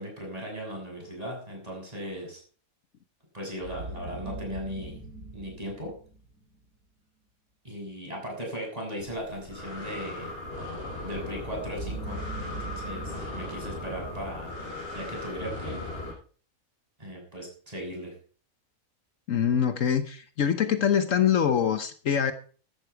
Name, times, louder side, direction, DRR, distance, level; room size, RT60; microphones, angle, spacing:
voice 1, 0.0-2.4 3.3-5.0 5.3-5.9 7.6-10.3 11.0-14.5 14.9-15.8 17.0-18.1, equal, 25° right, 7.0 m, -37 dB
sound 1, 3.6-6.6 11.6-14.8, right 2 dB, 75° right, 6.9 m, -41 dB
Breathing, 9.0-16.1, left 2 dB, 40° left, 6.8 m, -38 dB
voice 2, 19.3-22.3, left 8 dB, 65° left, 1.3 m, -24 dB
15.0 x 12.0 x 4.7 m
omnidirectional pair, 1.5 m